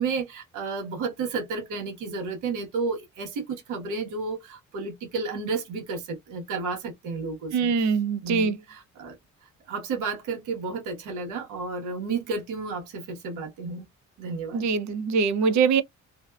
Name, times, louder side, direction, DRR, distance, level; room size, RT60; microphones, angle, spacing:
voice 1, 0.0-7.7 8.2-9.1 9.7-13.8 14.2-14.7, right 4 dB, 90° right, 1.1 m, -32 dB
voice 2, 7.5-8.6 14.5-15.8, right 5 dB, 70° right, 0.5 m, -23 dB
2.5 x 2.2 x 2.2 m
cardioid pair, 90°, 30 cm